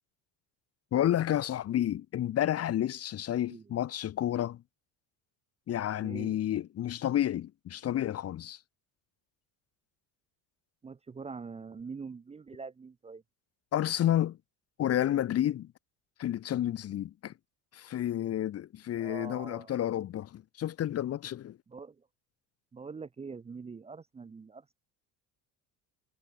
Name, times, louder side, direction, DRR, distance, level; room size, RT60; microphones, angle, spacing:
voice 1, 0.9-4.6 5.7-8.6 13.7-14.4 14.8-15.7 16.2-17.3 17.7-21.6, left 11 dB, 35° left, 1.4 m, -30 dB
voice 2, 3.3-3.6 6.0-6.4 10.8-13.2 19.0-19.7 21.7-22.1 22.7-24.7, right 5 dB, 15° right, 1.0 m, -44 dB
cardioid pair, 165°, 40 cm